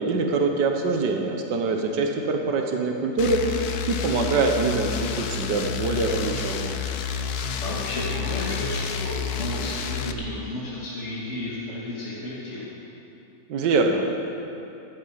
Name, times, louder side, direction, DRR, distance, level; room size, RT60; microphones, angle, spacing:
voice 1, 0.0-6.8 13.5-14.0, right 3 dB, 80° right, 3 dB, 1.8 m, -24 dB
sound 1, 3.2-10.1, left 6 dB, 65° left, 1.3 m, -30 dB
voice 2, 7.6-12.7, left 2 dB, 40° left, -7 dB, 2.8 m, -32 dB
15.5 x 14.0 x 6.5 m, 2.9 s
omnidirectional pair, 1.8 m